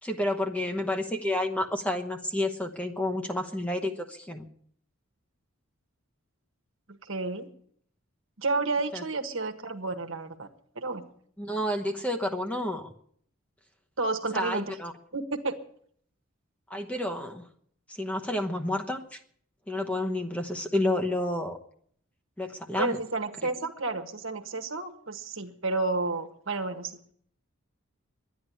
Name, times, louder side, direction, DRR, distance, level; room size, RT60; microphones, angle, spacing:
voice 1, 0.0-4.5 8.9-9.0 11.4-12.9 14.3-14.9 16.7-17.5 17.9-19.2 19.7-21.6 22.4-23.0, left 1 dB, 5° left, 3 dB, 1.0 m, -30 dB
voice 2, 6.9-7.5 8.4-10.5 10.7-11.0 14.0-14.7 15.1-15.6 22.8-26.9, right 3 dB, 65° right, 7 dB, 1.4 m, -31 dB
12.0 x 10.0 x 9.8 m, 0.62 s
head